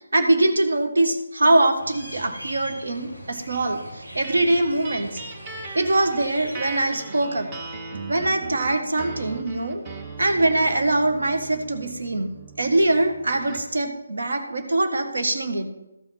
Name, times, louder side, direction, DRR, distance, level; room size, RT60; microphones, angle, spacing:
voice 1, 0.1-5.2 5.7-7.5 8.1-9.8 10.2-12.3 12.6-15.7, right 2 dB, 60° right, 6 dB, 1.5 m, -22 dB
sound 1, 1.8-6.8, right 1 dB, 85° right, 2.6 m, -41 dB
sound 2, 4.2-13.8, right 4 dB, 20° right, 1.0 m, -39 dB
13.5 x 5.6 x 5.9 m, 0.95 s
figure-of-eight pair, 145°, 0 cm